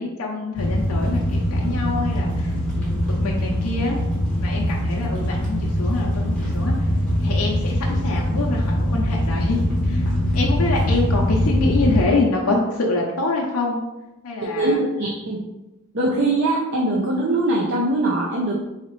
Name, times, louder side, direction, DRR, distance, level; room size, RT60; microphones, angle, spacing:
voice 1, 0.0-4.0 4.4-6.9 7.2-10.0 10.3-13.8 14.2-14.8, left 3 dB, 80° left, -1 dB, 0.7 m, -26 dB
sound 1, 0.6-12.0, equal, 5° left, 1.3 m, -22 dB
voice 2, 14.5-15.5 15.9-18.5, right 2 dB, 55° right, -3 dB, 0.6 m, -22 dB
4.0 x 4.0 x 3.1 m, 0.98 s
head